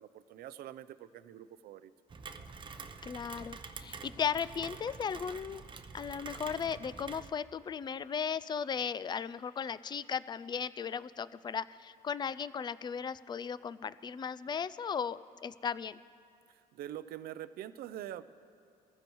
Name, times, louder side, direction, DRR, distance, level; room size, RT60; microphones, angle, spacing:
voice 1, 0.0-1.9 16.7-18.2, right 12 dB, 65° right, 13 dB, 0.5 m, -44 dB
Rain, 2.1-7.3, right 5 dB, 30° right, 0.7 m, -47 dB
voice 2, 3.0-5.6 5.9-16.0, left 7 dB, 25° left, 17 dB, 0.3 m, -36 dB
22.0 x 15.0 x 3.0 m, 2.4 s
cardioid pair, 110°, 17 cm